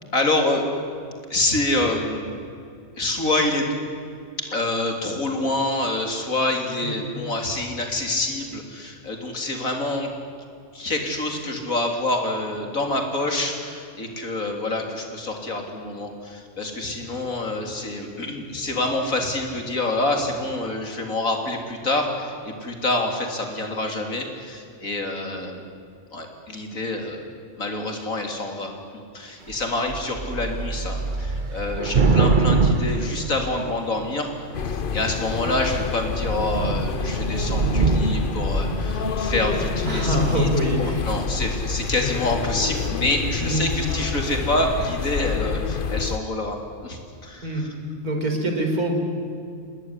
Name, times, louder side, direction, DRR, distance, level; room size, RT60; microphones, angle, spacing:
voice 1, 0.1-0.7 1.3-2.3 3.0-3.8 4.5-10.1 10.7-25.6 26.1-27.2 27.6-28.7 29.1-34.3 34.6-40.5 40.8-47.7, left 2 dB, 65° left, 3 dB, 3.9 m, -26 dB
Thunder / Rain, 29.5-29.6 29.9-34.0 34.7-35.2 35.6-35.8 36.0-39.8, right 4 dB, 35° right, 1.3 m, -24 dB
sound 1, 34.5-46.2, left 5 dB, 45° left, 0.9 m, -28 dB
voice 2, 39.8-41.1 43.4-43.7 47.4-47.7 48.0-49.0, equal, 85° right, 3 dB, 4.8 m, -24 dB
27.5 x 19.5 x 9.9 m, 2.4 s
omnidirectional pair, 1.5 m